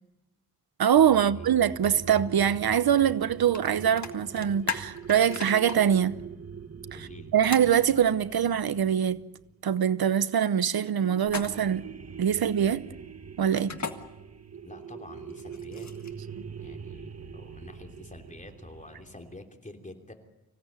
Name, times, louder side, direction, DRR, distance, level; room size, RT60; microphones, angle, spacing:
voice 1, 0.8-6.2 6.9-9.2 9.6-11.8 12.2-12.8 13.4-13.7, right 9 dB, 85° right, 0.8 m, -23 dB
sound 1, 0.9-10.0 10.7-19.5, right 6 dB, 45° right, 1.1 m, -43 dB
sound 2, 3.5-3.7 4.0-5.8 7.5-7.7 11.2-11.8 13.5-13.9 15.3-16.2, left 5 dB, 50° left, 1.8 m, -35 dB
voice 2, 6.9-7.3 14.6-15.9 16.6-20.1, left 2 dB, 20° left, 3.1 m, -47 dB
25.5 x 16.5 x 8.8 m
wide cardioid pair, 110°, 36 cm